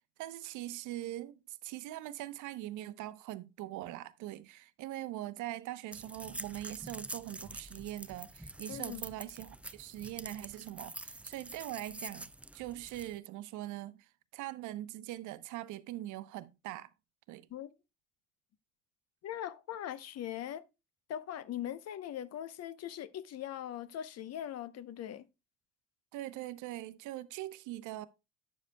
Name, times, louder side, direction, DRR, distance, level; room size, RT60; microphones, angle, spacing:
voice 1, 0.2-16.9 17.3-17.5 26.1-28.1, right 15 dB, 65° right, 0.8 m, -42 dB
sound 1, 5.9-13.2, right 2 dB, 5° right, 0.3 m, -46 dB
voice 2, 8.7-9.0 17.5-17.7 19.2-20.6 21.1-25.3, left 11 dB, 50° left, 0.8 m, -40 dB
10.5 x 7.3 x 2.2 m
hypercardioid pair, 75°, 32 cm